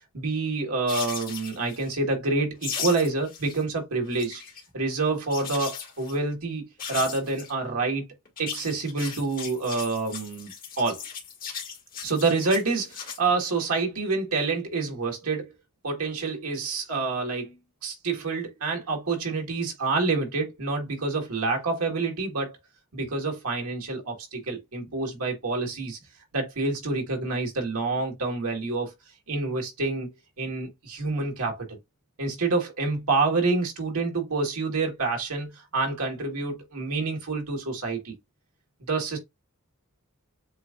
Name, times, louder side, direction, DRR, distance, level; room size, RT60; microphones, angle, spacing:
voice 1, 0.0-4.4 4.7-8.1 8.4-10.5 10.8-11.0 12.0-15.5 15.8-17.5 17.8-22.6 22.9-26.0 26.3-28.9 29.3-31.8 32.2-38.1 38.9-39.2, right 3 dB, 85° right, 1.8 m, -27 dB
sound 1, 0.9-1.9 2.6-3.6 3.9-4.6 5.3-6.2 6.8-7.5 8.3-13.2, left 7 dB, 40° left, 1.8 m, -37 dB
7.5 x 2.6 x 2.5 m
head